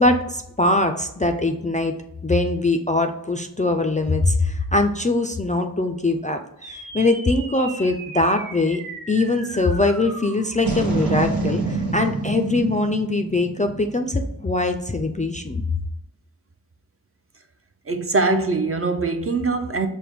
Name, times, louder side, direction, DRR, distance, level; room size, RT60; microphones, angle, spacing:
voice 1, 0.0-1.9 2.2-8.8 9.1-15.6, left 2 dB, 20° left, 0.3 m, -22 dB
sound 1, 6.6-15.2, right 3 dB, 70° right, 0.9 m, -30 dB
voice 2, 17.9-19.9, right 3 dB, 40° right, 0.5 m, -22 dB
5.8 x 2.1 x 3.4 m
wide cardioid pair, 50°, 37 cm